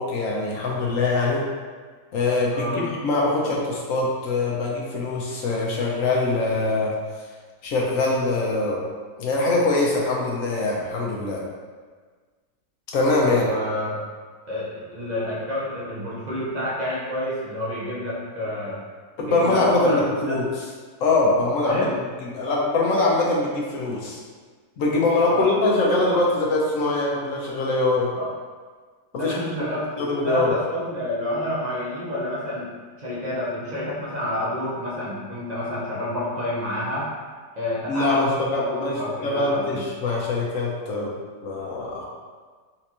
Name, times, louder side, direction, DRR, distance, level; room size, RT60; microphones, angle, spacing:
voice 1, 0.0-1.5 2.1-6.9 7.6-8.8 9.2-11.4 12.9-13.4 19.2-20.5 21.0-21.9 22.2-24.2 24.8-28.1 29.1-29.4 30.0-30.5 37.9-41.1 41.4-42.0, left 2 dB, 65° left, -3 dB, 0.8 m, -23 dB
voice 2, 2.5-2.9 13.2-14.0 14.5-18.8 19.2-20.4 21.7-22.0 25.3-25.5 28.1-28.3 29.2-32.7 33.0-37.1 37.6-39.8, left 1 dB, 35° right, -7 dB, 0.7 m, -29 dB
4.3 x 2.5 x 2.8 m, 1.5 s
omnidirectional pair, 1.8 m